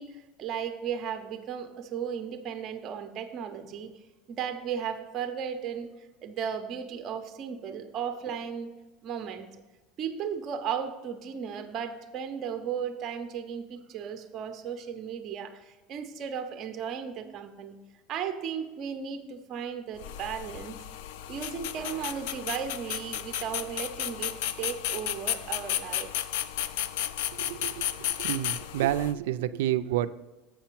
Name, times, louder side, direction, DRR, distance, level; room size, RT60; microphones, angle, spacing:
voice 1, 0.0-3.9 4.3-5.9 6.2-8.7 9.0-9.5 10.0-17.8 18.1-20.8 21.3-26.1, right 7 dB, 30° right, 8 dB, 0.5 m, -35 dB
sound 1, 20.0-29.1, left 11 dB, 65° left, 0.3 m, -33 dB
voice 2, 27.3-30.1, right 13 dB, 85° right, 14 dB, 0.3 m, -29 dB
7.5 x 5.7 x 4.5 m, 1.1 s
cardioid pair, 175°, 0 cm